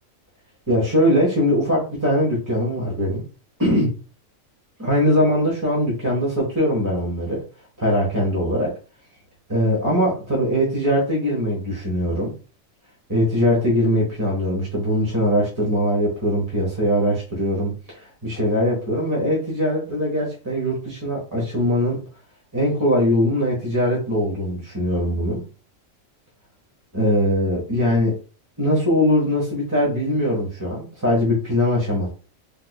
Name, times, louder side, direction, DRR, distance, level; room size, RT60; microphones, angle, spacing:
voice 1, 0.7-3.2 3.6-3.9 4.8-7.4 7.8-8.7 9.5-12.3 13.1-22.0 22.5-25.4 26.9-28.2 28.6-32.1, equal, 15° right, -4 dB, 1.1 m, -21 dB
3.5 x 3.2 x 2.2 m, 0.35 s
omnidirectional pair, 1.4 m